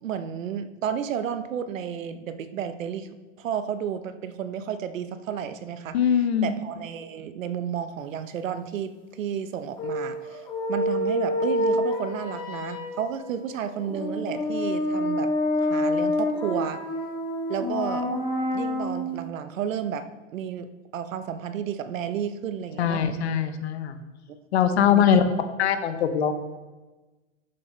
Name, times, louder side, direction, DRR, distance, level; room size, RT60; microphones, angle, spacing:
voice 1, 0.0-3.1 3.4-6.0 6.4-10.4 10.7-15.3 15.6-16.8 17.5-18.1 18.5-20.1 20.3-23.0 24.9-25.2, right 8 dB, 75° right, 11 dB, 0.9 m, -32 dB
voice 2, 5.9-6.5 22.8-24.0 24.5-25.2 25.6-26.3, left 8 dB, 55° left, 9 dB, 1.0 m, -22 dB
sound 1, 9.8-19.2, left 1 dB, 10° left, 0.9 m, -27 dB
12.5 x 6.9 x 3.3 m, 1.2 s
supercardioid pair, 165°, 39 cm